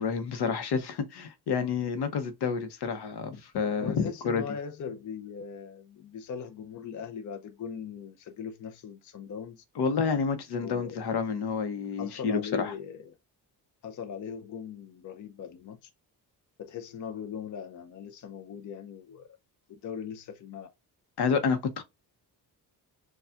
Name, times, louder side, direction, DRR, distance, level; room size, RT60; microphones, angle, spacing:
voice 1, 0.0-4.4 9.8-12.7 21.2-21.8, left 5 dB, 75° left, 0.8 m, -29 dB
voice 2, 3.8-9.6 10.6-11.1 12.0-13.1 13.8-15.9 16.6-19.3 19.8-20.7, left 7 dB, 50° left, 0.6 m, -40 dB
6.8 x 2.3 x 2.4 m
cardioid pair, 140°, 39 cm